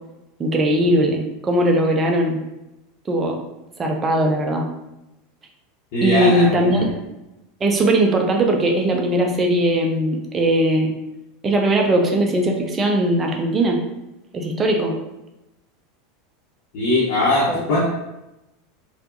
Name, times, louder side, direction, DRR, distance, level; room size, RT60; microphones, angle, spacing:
voice 1, 0.4-2.4 3.1-3.4 3.8-4.7 6.0-7.0 7.6-10.9 11.4-13.8 14.3-15.0 17.5-17.6, right 1 dB, 20° right, 2 dB, 0.6 m, -19 dB
voice 2, 5.9-6.8 16.7-17.8, left 1 dB, 50° left, -9 dB, 1.2 m, -20 dB
4.5 x 2.6 x 2.6 m, 0.94 s
figure-of-eight pair, 80°, 0 cm